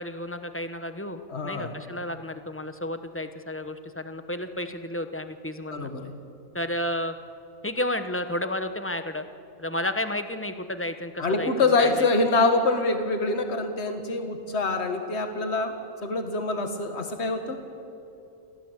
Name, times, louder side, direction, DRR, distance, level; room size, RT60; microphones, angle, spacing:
voice 1, 0.0-5.9 6.5-7.1 7.6-9.3 9.6-12.1, left 1 dB, 10° left, 9 dB, 0.8 m, -32 dB
voice 2, 1.3-1.8 5.7-6.1 11.2-15.7 16.0-17.6, left 3 dB, 50° left, 6 dB, 2.0 m, -25 dB
28.0 x 16.5 x 8.1 m, 2.6 s
omnidirectional pair, 1.4 m